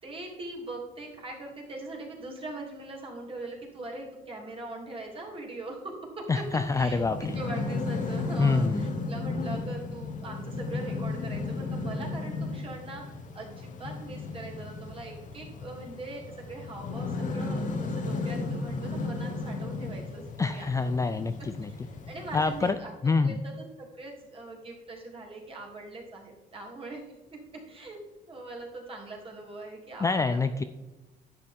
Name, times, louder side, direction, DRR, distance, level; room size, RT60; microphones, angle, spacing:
voice 1, 0.0-20.2 20.5-21.2 21.8-22.9 23.2-28.0 28.3-30.4, right 2 dB, 35° right, -1 dB, 2.7 m, -41 dB
voice 2, 6.3-7.2 8.4-8.8 20.4-21.7 22.3-22.8 23.0-23.4 30.0-30.6, left 4 dB, 20° left, 10 dB, 0.4 m, -26 dB
sound 1, 6.4-22.7, left 3 dB, 50° left, 1.3 m, -34 dB
10.5 x 7.6 x 3.6 m, 1.1 s
cardioid pair, 110°, 17 cm